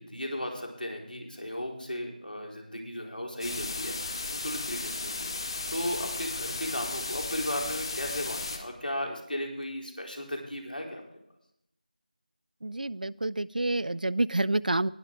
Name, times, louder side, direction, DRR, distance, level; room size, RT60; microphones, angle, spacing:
voice 1, 0.0-11.0, left 1 dB, 90° left, 0 dB, 4.3 m, -36 dB
sound 1, 3.4-8.6, left 3 dB, 35° left, 1.5 m, -35 dB
voice 2, 12.6-14.9, right 2 dB, 70° right, 20 dB, 0.4 m, -28 dB
19.5 x 6.7 x 4.7 m, 0.77 s
figure-of-eight pair, 170°, 5 cm